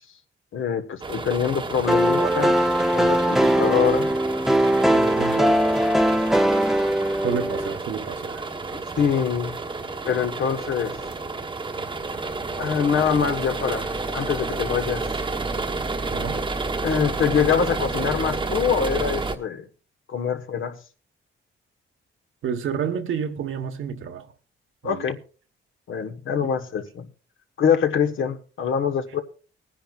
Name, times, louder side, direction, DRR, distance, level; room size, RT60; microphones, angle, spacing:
voice 1, 0.5-2.5 2.9-4.1 9.0-9.6 10.0-11.0 12.6-15.1 16.8-19.7 20.1-20.8 24.8-25.2 25.9-27.1 27.6-29.2, left 7 dB, 70° left, 1.4 m, -24 dB
sound 1, 1.0-19.4, right 3 dB, 25° right, 1.1 m, -30 dB
sound 2, 1.9-7.8, equal, ahead, 0.6 m, -20 dB
voice 2, 4.8-5.7 7.2-8.5 16.1-16.5 22.4-24.3 24.8-25.1 26.4-26.5, right 7 dB, 70° right, 1.3 m, -30 dB
21.5 x 10.0 x 2.4 m
cardioid pair, 130°, 21 cm